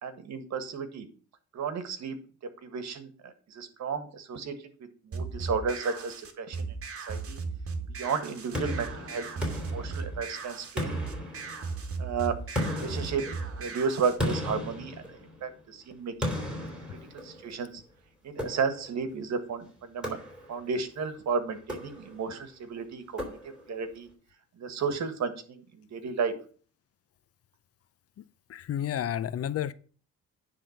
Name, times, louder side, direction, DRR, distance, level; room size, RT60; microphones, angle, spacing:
voice 1, 0.0-1.1 1.5-2.2 2.6-4.5 5.0-6.7 7.1-7.4 8.0-11.0 12.0-12.4 12.7-13.2 13.5-14.9 15.4-16.4 16.6-17.0 17.2-17.8 18.2-20.2 20.5-23.4 23.7-24.1 24.6-26.3, right 5 dB, 65° right, 1.6 m, -33 dB
sound 1, 5.1-14.2, right 4 dB, 50° right, 1.8 m, -37 dB
sound 2, 8.5-10.4 10.8-11.9 12.6-15.6 16.2-17.6 18.4-19.0 20.0-20.7 21.6-22.4 23.2-23.8, left 1 dB, 5° right, 3.9 m, -36 dB
voice 2, 28.5-29.7, left 10 dB, 50° left, 0.6 m, -31 dB
10.0 x 3.6 x 7.2 m
cardioid pair, 90°, 30 cm